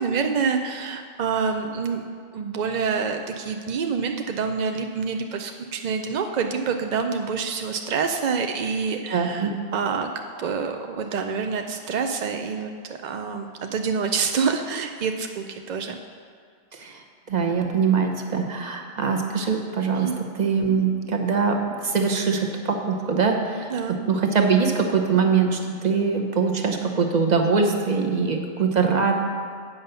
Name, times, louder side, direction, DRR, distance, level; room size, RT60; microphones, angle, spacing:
voice 1, 0.0-2.0 2.3-10.1 10.4-16.0 19.9-20.2 23.7-24.0, right 5 dB, 65° right, 5 dB, 0.4 m, -27 dB
voice 2, 9.1-9.5 16.7-17.0 17.3-20.1 20.3-21.6 21.8-23.7 24.1-29.1, right 5 dB, 40° right, 3 dB, 0.9 m, -22 dB
8.7 x 5.5 x 6.7 m, 2.1 s
omnidirectional pair, 1.3 m